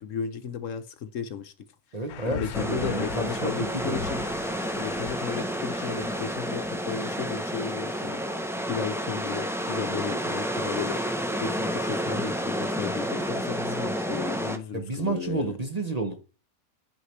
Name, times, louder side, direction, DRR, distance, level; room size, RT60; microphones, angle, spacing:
voice 1, 0.0-1.5 1.9-2.0 2.3-4.3 4.7-8.2 8.7-11.0 11.4-15.6, left 7 dB, 65° left, 1.1 m, -34 dB
voice 2, 1.9-4.0 14.7-16.2, right 3 dB, 35° right, 0.8 m, -30 dB
sound 1, 2.1-8.4 10.5-11.0 11.5-12.0 12.3-12.4, left 9 dB, 85° left, 1.2 m, -42 dB
sound 2, 2.5-14.6, equal, 5° right, 0.3 m, -30 dB
11.0 x 6.5 x 3.2 m
omnidirectional pair, 1.5 m